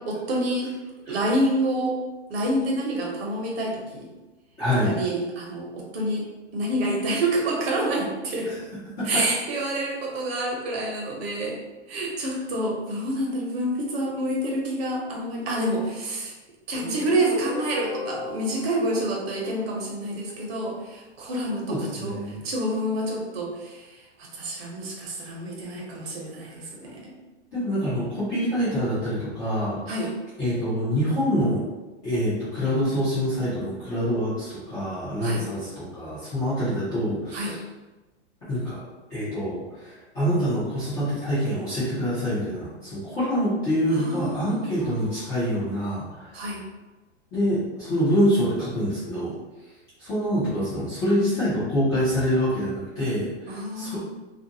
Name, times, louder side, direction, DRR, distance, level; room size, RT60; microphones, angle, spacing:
voice 1, 0.1-0.7 1.1-2.0 2.3-4.1 4.8-8.5 9.0-11.6 11.9-16.3 16.7-27.1 29.9-30.1 35.2-35.5 37.3-37.6 43.9-45.1 46.3-46.6 53.5-54.0, right 1 dB, 60° right, -2 dB, 0.9 m, -28 dB
voice 2, 4.6-4.9 8.4-8.6 9.0-9.2 21.7-22.3 27.5-29.8 30.4-31.6 32.0-37.6 38.5-38.8 39.1-46.5 47.3-49.3 50.0-54.0, equal, 10° left, -13 dB, 0.3 m, -26 dB
Guitar, 16.7-20.2, left 2 dB, 50° left, 0.8 m, -36 dB
2.5 x 2.1 x 2.7 m, 1.1 s
hypercardioid pair, 145°, 35 cm